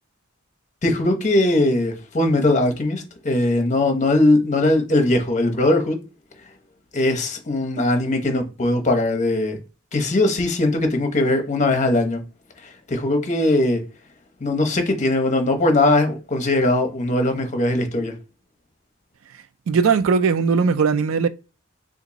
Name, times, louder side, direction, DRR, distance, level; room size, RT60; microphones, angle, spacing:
voice 1, 0.8-6.0 6.9-9.6 9.9-12.2 12.9-13.8 14.4-18.1, left 2 dB, 35° left, 0.8 m, -20 dB
voice 2, 19.7-21.3, right 5 dB, 80° right, 0.4 m, -18 dB
2.9 x 2.5 x 3.9 m
head